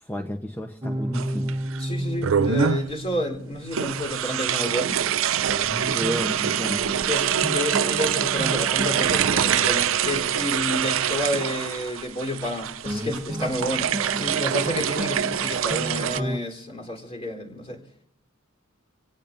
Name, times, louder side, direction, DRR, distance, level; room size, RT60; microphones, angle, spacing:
voice 1, 0.0-1.5 5.9-6.8, equal, 10° left, 0.9 m, -31 dB
sound 1, 0.8-4.6 4.9-5.0 5.5-11.3 12.8-16.4, right 1 dB, 25° right, 1.2 m, -33 dB
sound 2, 1.1-1.8 2.2-2.9 3.7-16.2, right 9 dB, 70° right, 0.5 m, -25 dB
voice 2, 1.8-5.1 7.1-17.8, left 1 dB, 30° left, 3.7 m, -30 dB
26.5 x 17.5 x 2.6 m
head